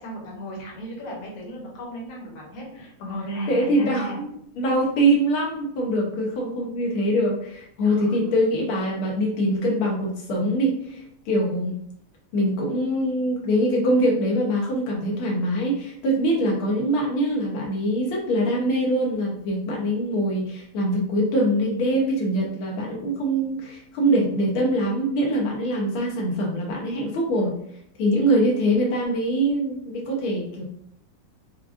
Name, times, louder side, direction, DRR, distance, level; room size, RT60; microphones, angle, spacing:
voice 1, 0.0-4.2 7.8-8.3, right 1 dB, 55° left, -3 dB, 1.4 m, -35 dB
voice 2, 3.5-4.3 4.6-11.8 12.3-27.6 28.0-30.6, right 1 dB, 85° left, -2 dB, 1.7 m, -23 dB
4.9 x 2.3 x 2.4 m, 0.70 s
omnidirectional pair, 2.3 m